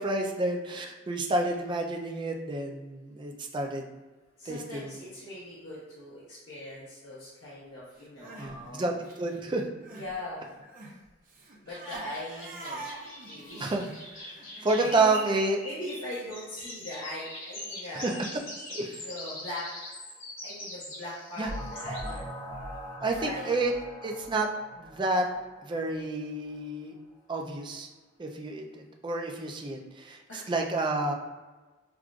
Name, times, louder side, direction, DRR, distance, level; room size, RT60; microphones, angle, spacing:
voice 1, 0.0-3.8 4.5-5.0 8.4-8.9 9.2-9.6 13.6-13.9 14.2-14.3 14.6-15.6 17.9-18.1 18.7-19.1 21.4-21.5 23.0-23.7 24.0-24.5 24.8-25.3 25.6-26.9 27.3-27.9 28.2-31.1, right 2 dB, 25° right, 2 dB, 0.4 m, -29 dB
voice 2, 4.4-8.8 9.9-10.5 11.6-12.8 13.3-13.7 14.5-15.1 15.6-18.2 19.0-19.6 20.4-22.3 23.2-23.6 30.3-30.5, left 1 dB, 70° left, -9 dB, 1.0 m, -40 dB
Crying sobbing, 8.0-10.1 10.4-15.4, right 2 dB, 45° right, 0.8 m, -45 dB
sound 1, 11.7-22.2, left 1 dB, 85° left, 1.4 m, -43 dB
sound 2, 21.4-26.1, equal, 30° left, 1.4 m, -41 dB
5.9 x 2.4 x 2.4 m, 1.2 s
head